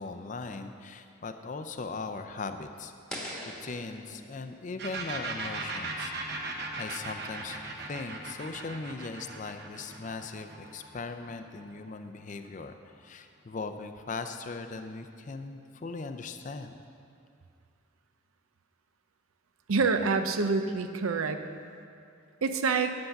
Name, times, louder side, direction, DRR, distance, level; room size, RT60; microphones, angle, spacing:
voice 1, 0.0-3.3 3.6-16.7, left 3 dB, 35° left, 8 dB, 0.4 m, -39 dB
sound 1, 3.1-6.1, equal, 5° left, 1.2 m, -44 dB
sound 2, 4.8-12.3, right 3 dB, 50° right, 1.0 m, -38 dB
voice 2, 19.7-21.4 22.4-22.9, right 4 dB, 90° right, 8 dB, 0.6 m, -26 dB
9.6 x 7.8 x 5.8 m, 2.4 s
head